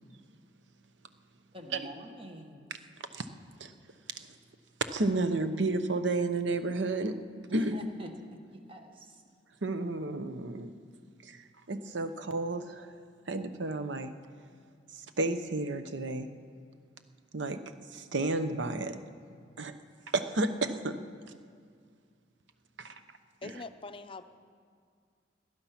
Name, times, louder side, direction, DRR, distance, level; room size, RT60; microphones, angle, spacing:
voice 1, 1.5-2.7 7.5-9.2, right 1 dB, 30° right, 4 dB, 1.2 m, -44 dB
voice 2, 4.9-7.2 7.5-7.8 9.6-10.7 11.2-11.4 11.7-12.9 13.3-14.1 15.2-16.3 17.3-17.6 17.9-19.0 19.6-19.7 20.1-20.9 22.8-22.9 23.4-23.6, right 2 dB, 75° right, 10 dB, 0.9 m, -31 dB
voice 3, 23.4-24.2, left 3 dB, 30° left, 9 dB, 0.6 m, -43 dB
19.0 x 11.5 x 5.9 m, 2.1 s
head